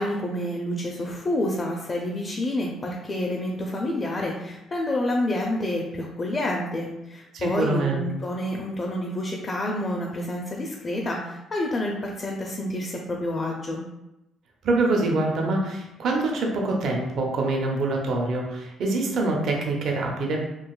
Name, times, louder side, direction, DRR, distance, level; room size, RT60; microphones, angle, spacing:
voice 1, 0.0-13.8, left 1 dB, 35° left, -1 dB, 0.5 m, -28 dB
voice 2, 7.3-8.0 14.6-20.4, right 2 dB, 65° right, 0 dB, 0.6 m, -25 dB
3.7 x 2.5 x 2.3 m, 0.91 s
cardioid pair, 85°, 0 cm